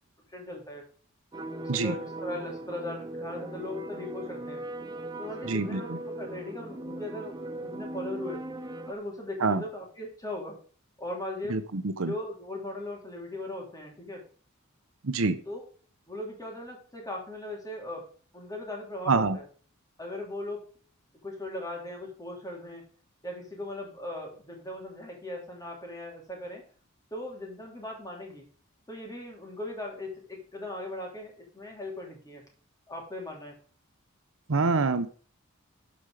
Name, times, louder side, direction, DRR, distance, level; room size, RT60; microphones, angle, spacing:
voice 1, 0.3-0.9 1.5-4.6 5.2-8.4 8.9-10.6 11.0-11.6 12.0-14.2 15.4-15.6 16.1-19.4 20.0-20.6 21.2-22.8 23.2-26.6 27.1-28.4 28.9-32.4 32.9-33.6, left 1 dB, 15° left, 0 dB, 3.2 m, -38 dB
sound 1, 1.3-8.9, right 1 dB, 20° right, 0.7 m, -39 dB
voice 2, 5.4-6.0 9.4-9.6 11.5-12.1 15.0-15.4 19.1-19.4 34.5-35.1, right 3 dB, 70° right, 11 dB, 0.8 m, -26 dB
12.5 x 5.2 x 4.9 m, 0.43 s
head